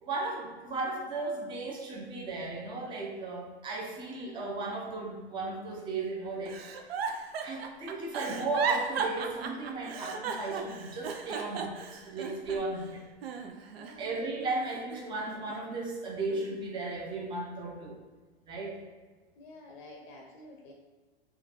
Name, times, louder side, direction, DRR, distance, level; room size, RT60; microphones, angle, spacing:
voice 1, 0.0-6.6 7.4-13.0 14.0-18.0 18.4-18.8, right 3 dB, 15° right, -2 dB, 0.6 m, -35 dB
Giggle, 6.5-12.8 13.2-14.2 14.6-15.8 16.3-16.6, right 5 dB, 70° right, 0.6 m, -36 dB
voice 2, 13.8-14.5 19.4-20.7, left 2 dB, 50° left, 0 dB, 0.7 m, -49 dB
3.7 x 2.3 x 4.2 m, 1.3 s
hypercardioid pair, 105°, 32 cm